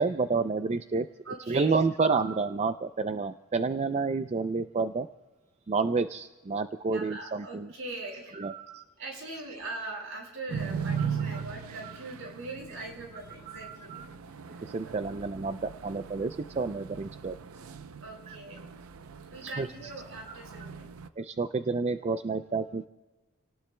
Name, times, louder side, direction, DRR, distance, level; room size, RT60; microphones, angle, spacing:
voice 1, 0.0-1.1 1.5-5.1 5.7-7.7 8.3-8.8 11.0-11.1 11.3-11.4 13.5-14.1 14.6-17.4 18.3-18.4 19.4-19.7 21.2-22.9, right 4 dB, 30° right, 10 dB, 0.4 m, -29 dB
voice 2, 1.2-1.8 6.9-8.4 9.0-14.9 18.0-18.7 19.3-20.9, right 2 dB, 70° right, 0 dB, 5.6 m, -41 dB
sound 1, 10.5-21.1, right 6 dB, 85° right, 0.6 m, -39 dB
29.5 x 18.5 x 2.2 m, 1.2 s
head